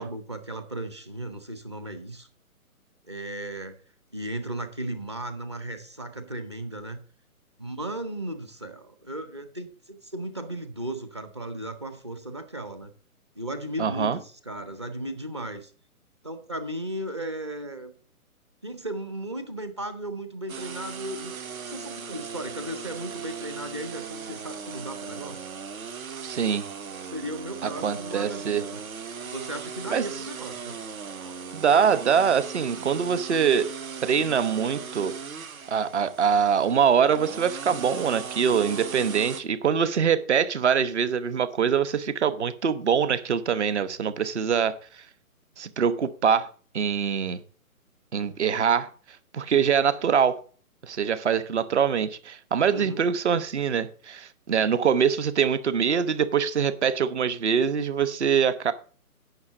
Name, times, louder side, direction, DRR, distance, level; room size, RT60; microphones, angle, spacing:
voice 1, 0.0-2.3 3.1-3.8 4.1-7.0 7.6-12.9 13.4-15.7 16.2-17.9 18.6-25.4 27.0-28.8 29.2-30.8 31.2-31.6 52.7-53.0, right 1 dB, 20° right, 0.6 m, -36 dB
voice 2, 13.8-14.2 26.2-26.7 27.6-28.6 29.9-30.1 31.5-33.7 34.0-35.1 35.7-45.0 45.6-46.5 46.7-47.4 48.1-48.9 49.3-50.4 50.8-58.7, right 7 dB, 50° right, 1.1 m, -24 dB
sound 1, 20.5-39.4, right 6 dB, 70° right, 1.4 m, -38 dB
9.5 x 6.3 x 7.1 m
hypercardioid pair, 165°, 44 cm